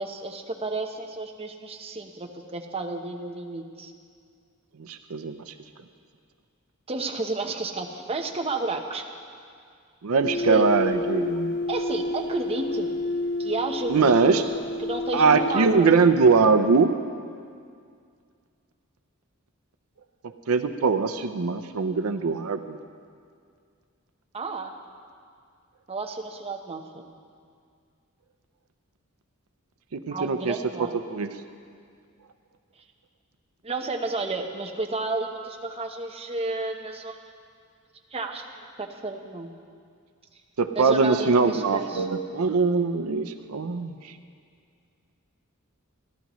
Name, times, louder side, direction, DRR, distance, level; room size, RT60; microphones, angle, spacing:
voice 1, 0.0-3.9 6.9-9.0 10.3-10.6 11.7-12.9 13.4-14.5 14.8-15.9 24.3-24.7 25.9-27.1 30.1-30.9 33.6-37.2 38.1-39.5 40.7-42.1, right 3 dB, 30° right, 2 dB, 0.9 m, -32 dB
voice 2, 4.8-5.5 10.0-11.5 13.9-14.4 15.1-16.9 20.2-22.8 29.9-30.5 31.1-31.3 40.6-44.1, right 4 dB, 85° right, 9 dB, 0.6 m, -22 dB
sound 1, 10.2-15.9, left 2 dB, 55° left, 1.4 m, -30 dB
28.5 x 11.5 x 3.1 m, 2.3 s
head